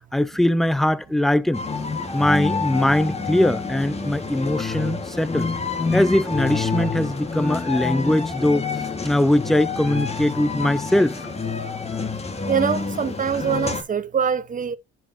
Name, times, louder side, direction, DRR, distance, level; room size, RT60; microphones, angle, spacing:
voice 1, 0.0-1.6 2.1-5.5 5.9-8.7 9.0-11.2, left 1 dB, ahead, 0.3 m, -21 dB
sound 1, 1.5-13.8, left 4 dB, 20° left, 1.3 m, -27 dB
voice 2, 12.5-14.8, right 7 dB, 25° right, 0.7 m, -24 dB
10.0 x 4.7 x 2.5 m
cardioid pair, 90°, 30 cm